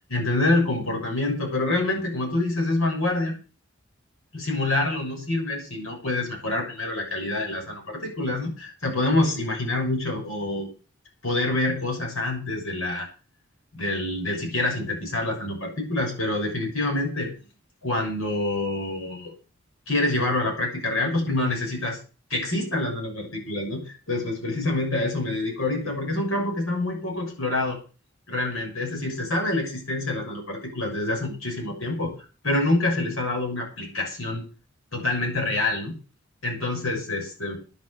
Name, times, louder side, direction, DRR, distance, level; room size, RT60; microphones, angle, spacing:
voice 1, 0.1-3.3 4.3-10.7 11.2-13.1 13.7-17.3 17.8-19.3 19.9-22.0 22.3-27.8 28.3-32.1 32.4-34.4 34.9-35.9 36.4-37.6, left 2 dB, 90° left, 1 dB, 6.5 m, -26 dB
10.5 x 8.8 x 8.0 m, 0.36 s
head